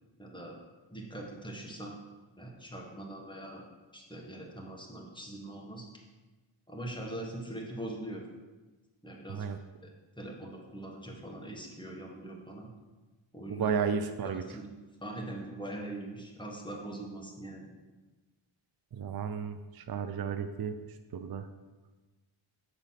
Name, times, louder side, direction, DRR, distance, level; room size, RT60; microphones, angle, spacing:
voice 1, 0.2-0.5 0.9-2.0 2.4-3.6 3.9-5.9 6.7-8.3 9.0-9.5 9.8-9.9 10.2-12.7 13.3-13.8 14.2-14.7 15.0-17.7, right 1 dB, 10° left, 0 dB, 1.4 m, -42 dB
voice 2, 13.5-14.4 18.9-20.8 21.1-21.5, right 6 dB, 50° right, 8 dB, 0.5 m, -33 dB
7.7 x 4.0 x 5.7 m, 1.2 s
wide cardioid pair, 60°, 49 cm